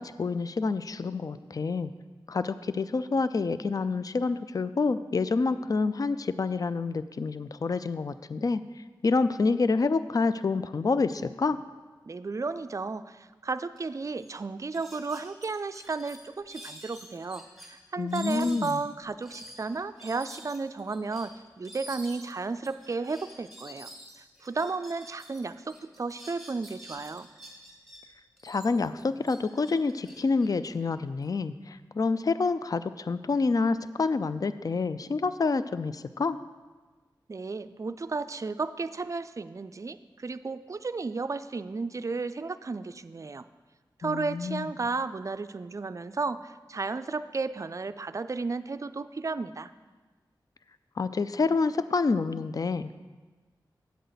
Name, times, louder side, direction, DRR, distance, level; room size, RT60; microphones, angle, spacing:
voice 1, 0.0-1.9 2.3-8.6 9.0-11.6 18.0-18.8 28.4-36.4 44.0-44.7 51.0-52.9, left 4 dB, 45° left, 13 dB, 0.4 m, -28 dB
voice 2, 12.0-23.9 24.4-27.3 37.3-43.4 44.0-49.7, right 4 dB, 40° right, 12 dB, 0.4 m, -33 dB
sound 1, 13.8-13.9 14.1-14.3 14.7-17.7 18.1-25.4 25.7-28.0 28.4-31.2, right 1 dB, ahead, 2.3 m, -48 dB
9.2 x 8.0 x 4.0 m, 1.3 s
cardioid pair, 55°, 8 cm